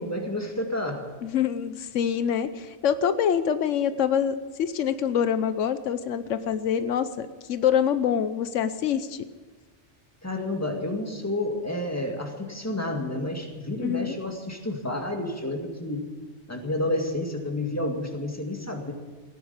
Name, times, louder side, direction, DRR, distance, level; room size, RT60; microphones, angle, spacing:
voice 1, 0.0-1.1 10.2-16.1 16.5-18.9, left 1 dB, 15° left, 2 dB, 2.0 m, -30 dB
voice 2, 1.2-9.2 13.8-14.2, left 8 dB, 90° left, 12 dB, 1.1 m, -25 dB
16.5 x 9.9 x 8.1 m, 1.3 s
omnidirectional pair, 1.2 m